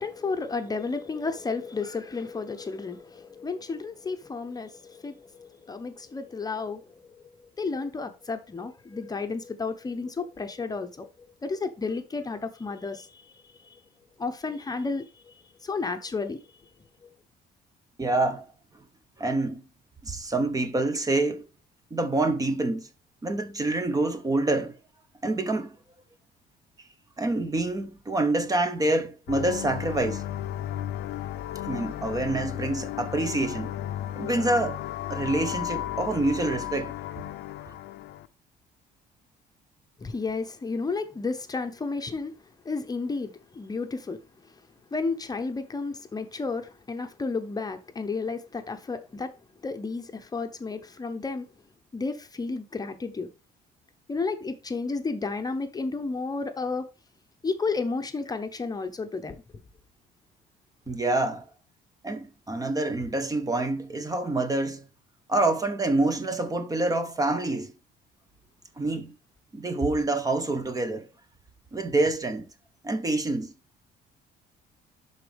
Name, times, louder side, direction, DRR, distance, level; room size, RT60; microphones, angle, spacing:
voice 1, 0.0-13.3 13.6-13.8 14.2-15.3 15.6-16.4 17.0-17.1 40.0-42.3 42.6-44.2 44.9-49.3 49.6-51.5 51.9-53.3 54.1-56.9 57.4-59.4, left 4 dB, 20° left, 0.9 m, -32 dB
voice 2, 18.0-18.5 19.2-19.6 20.0-21.4 21.9-22.9 23.2-24.8 25.2-25.8 27.2-30.2 31.6-33.7 34.2-36.9 60.9-61.5 62.0-64.9 65.3-67.7 68.8-69.1 69.5-71.1 71.7-72.5 72.8-73.5, right 2 dB, 20° right, 0.9 m, -27 dB
sound 1, 29.3-38.3, left 12 dB, 75° left, 0.6 m, -34 dB
11.5 x 4.0 x 3.4 m
cardioid pair, 110°, 17 cm